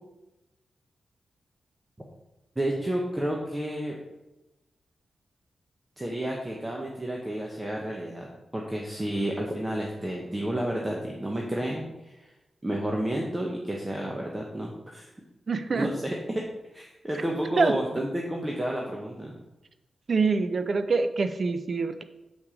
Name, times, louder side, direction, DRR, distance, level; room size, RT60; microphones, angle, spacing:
voice 1, 2.6-3.9 6.0-8.3 8.5-12.3 12.6-15.1 15.7-16.4 16.7-19.4, right 1 dB, 15° right, -1 dB, 1.0 m, -31 dB
voice 2, 15.5-15.9 17.6-17.7 20.1-22.0, right 4 dB, 50° right, 10 dB, 0.5 m, -25 dB
7.2 x 4.7 x 5.0 m, 1.0 s
cardioid pair, 85°, 0 cm